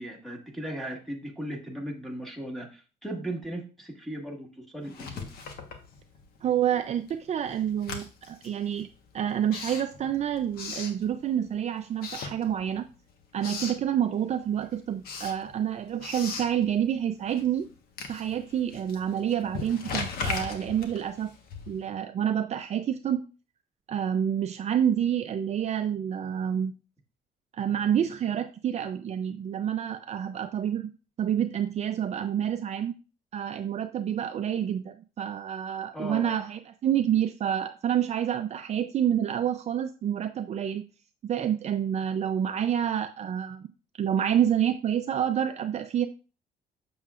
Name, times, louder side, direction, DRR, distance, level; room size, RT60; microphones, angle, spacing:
voice 1, 0.0-5.3 35.9-36.3, right 1 dB, ahead, 2 dB, 1.7 m, -37 dB
Writing, 4.9-6.4 6.7-11.5 11.9-12.9 13.2-13.9 14.3-22.0, left 5 dB, 80° left, 1.3 m, -39 dB
voice 2, 6.4-8.9 9.1-12.9 13.3-17.7 18.1-21.3 21.7-23.2 23.9-26.7 27.5-30.9 31.2-33.0 33.3-40.8 41.2-43.7 44.0-46.1, right 9 dB, 45° right, 7 dB, 0.5 m, -28 dB
7.3 x 7.0 x 2.5 m, 0.34 s
cardioid pair, 115°, 16 cm